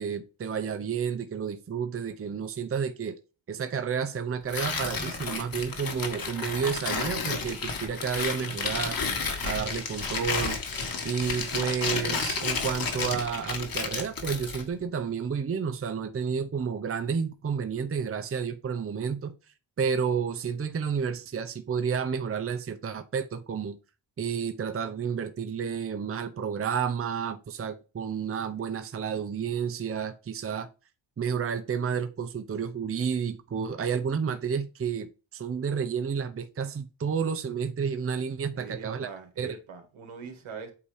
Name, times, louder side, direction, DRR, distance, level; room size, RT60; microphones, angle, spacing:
voice 1, 0.0-3.2 3.5-9.0 9.4-10.6 11.0-19.3 19.8-23.8 24.2-30.7 31.2-39.1 39.4-39.6, right 6 dB, 30° right, 0.6 m, -31 dB
Tearing, 4.5-14.7, left 4 dB, 45° left, 1.6 m, -32 dB
voice 2, 38.5-40.7, right 5 dB, 85° right, 1.9 m, -42 dB
8.4 x 2.8 x 4.9 m
cardioid pair, 105°, 47 cm